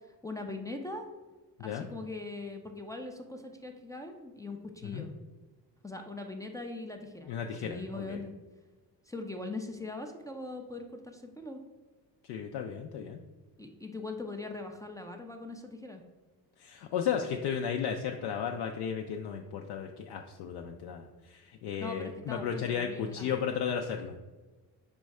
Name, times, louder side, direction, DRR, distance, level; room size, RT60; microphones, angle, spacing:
voice 1, 0.2-1.0 1.6-5.1 5.8-8.3 9.1-11.6 13.6-16.0 21.8-23.3, left 2 dB, 10° left, 2 dB, 0.3 m, -41 dB
voice 2, 7.3-8.2 12.3-13.2 16.6-24.1, left 7 dB, 75° left, 3 dB, 0.5 m, -34 dB
5.1 x 2.1 x 4.7 m, 1.2 s
cardioid pair, 90°, 41 cm